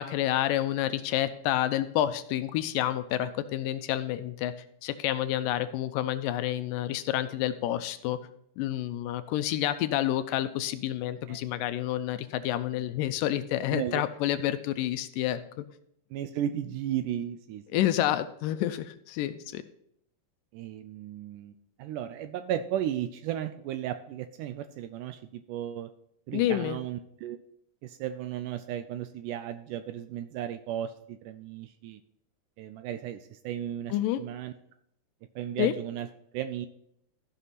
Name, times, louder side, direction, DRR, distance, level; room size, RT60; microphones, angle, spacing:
voice 1, 0.0-4.5 4.8-8.2 8.6-15.4 17.7-19.6 26.3-26.8 33.9-34.2 35.6-35.7, left 12 dB, 80° left, 11 dB, 2.1 m, -29 dB
voice 2, 13.7-14.0 16.1-17.6 20.5-21.5 21.8-25.9 26.3-27.4 27.8-32.0 32.6-34.5 35.4-36.1 36.3-36.7, right 11 dB, 80° right, 10 dB, 1.9 m, -35 dB
14.5 x 5.9 x 4.1 m, 0.70 s
omnidirectional pair, 4.0 m